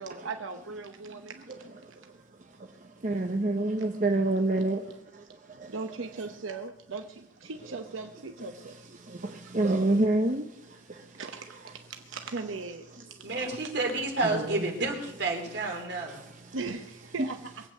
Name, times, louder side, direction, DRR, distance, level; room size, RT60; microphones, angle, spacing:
voice 1, 0.0-1.7 4.4-4.7 5.7-8.8 11.2-13.1 16.5-17.4, right 4 dB, 85° right, 0.9 m, -39 dB
voice 2, 1.5-6.0 8.4-11.7 12.9-13.0 14.2-14.7 16.1-16.6 17.2-17.3, right 2 dB, 40° right, 0.8 m, -30 dB
voice 3, 13.2-16.2, right 2 dB, 60° right, 3.3 m, -30 dB
22.0 x 8.4 x 6.5 m
head